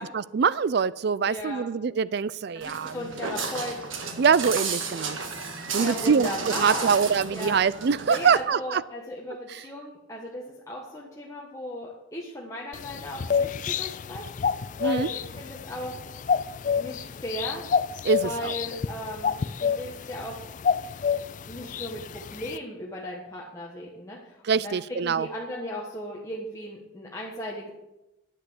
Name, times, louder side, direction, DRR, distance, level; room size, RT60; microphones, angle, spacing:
voice 1, 0.0-3.1 4.2-5.2 5.7-8.8 9.5-9.6 14.8-15.1 18.0-18.5 24.4-25.3, right 6 dB, 55° right, 19 dB, 0.4 m, -24 dB
voice 2, 1.2-1.6 2.5-3.8 5.8-6.9 7.3-7.6 8.1-14.3 14.8-15.9 16.8-17.6 18.2-20.3 21.5-24.8 25.0-27.7, left 1 dB, 15° left, -3 dB, 1.4 m, -36 dB
Walk footsteps, 2.6-8.4, right 4 dB, 80° right, 1.7 m, -33 dB
sound 1, 12.7-22.6, left 6 dB, 40° left, 0.3 m, -29 dB
9.9 x 7.8 x 8.1 m, 0.96 s
head